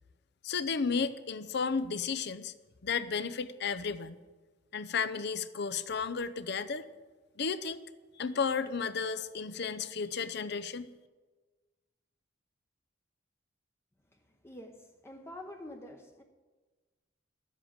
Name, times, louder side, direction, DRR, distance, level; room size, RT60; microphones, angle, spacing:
voice 1, 0.4-2.5 2.8-4.2 4.7-6.9 7.4-7.8 8.2-10.9, left 5 dB, 60° left, 0.6 m, -33 dB
voice 2, 14.4-16.2, left 1 dB, 15° left, 0.8 m, -47 dB
12.5 x 7.5 x 8.7 m
head